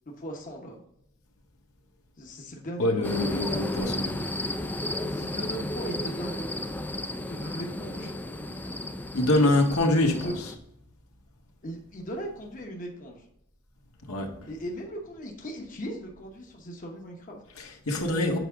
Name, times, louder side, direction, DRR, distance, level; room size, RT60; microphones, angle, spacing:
voice 1, 0.1-0.8 2.2-4.5 5.0-6.7 7.3-8.2 8.6-8.7 9.3-9.4 10.1-10.4 11.6-13.3 14.4-17.4, equal, 40° left, 0 dB, 1.0 m, -38 dB
voice 2, 2.8-4.2 9.1-10.3 14.1-14.3 17.6-18.4, left 1 dB, 85° left, 1 dB, 1.5 m, -24 dB
sound 1, 3.0-10.5, left 1 dB, 10° left, 0.3 m, -33 dB
8.1 x 4.9 x 3.7 m, 0.79 s
head